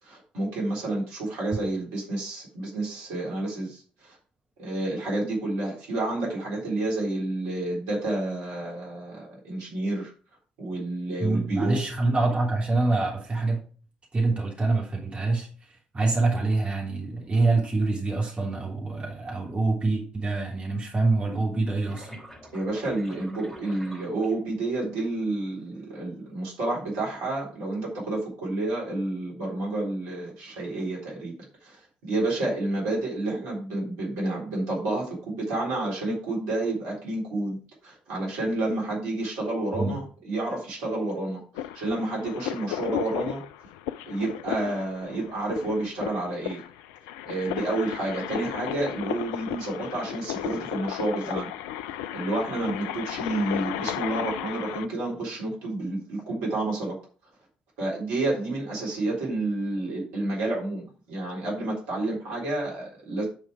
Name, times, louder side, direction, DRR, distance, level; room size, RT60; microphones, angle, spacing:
voice 1, 0.0-4.2 4.6-10.1 10.6-11.8 22.5-31.3 31.6-37.6 37.8-43.4 44.1-46.6 47.3-51.5 52.1-57.0 57.8-63.3, right 2 dB, 65° right, -3 dB, 4.0 m, -30 dB
voice 2, 11.2-13.6 14.1-22.1 39.7-40.0, right 3 dB, 25° right, -2 dB, 3.1 m, -26 dB
sound 1, 21.9-24.9 25.7-26.2, equal, ahead, 4.4 m, -46 dB
sound 2, 41.5-54.9, left 12 dB, 65° left, 0.4 m, -34 dB
10.0 x 5.5 x 4.8 m, 0.39 s
figure-of-eight pair, 50°, 5 cm